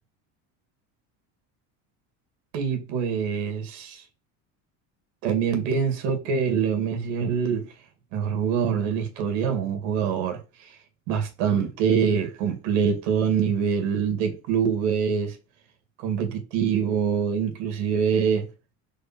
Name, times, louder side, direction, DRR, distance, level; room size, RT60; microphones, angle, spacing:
voice 1, 2.5-4.0 5.2-7.7 8.1-10.7 11.1-15.4 16.0-18.5, right 7 dB, 80° right, 2.3 m, -25 dB
4.9 x 4.4 x 6.1 m
cardioid pair, 145°, 40 cm